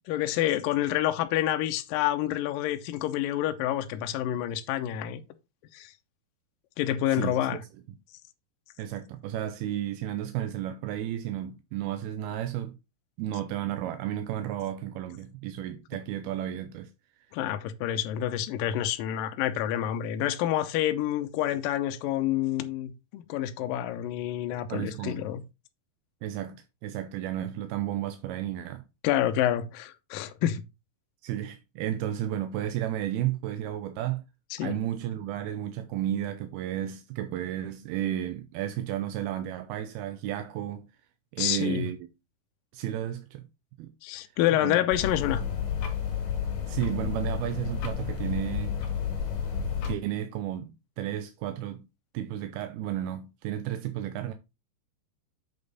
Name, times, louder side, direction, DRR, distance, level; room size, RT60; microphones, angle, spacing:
voice 1, 0.0-5.2 5.7-5.9 6.8-7.6 17.3-25.4 29.0-30.6 34.5-34.7 41.4-41.9 44.0-45.4, left 12 dB, 80° left, 2.1 m, -28 dB
voice 2, 7.1-7.6 8.8-12.7 13.2-16.9 24.7-25.2 26.2-28.8 31.2-34.2 34.6-40.9 41.3-42.0 42.7-43.4 43.8-43.9 44.6-44.8 46.7-48.8 49.9-50.7 51.0-51.9 52.1-54.3, right 11 dB, 80° right, 2.4 m, -32 dB
sound 1, 44.9-49.9, left 8 dB, 55° left, 3.4 m, -31 dB
7.9 x 5.4 x 4.0 m
omnidirectional pair, 4.9 m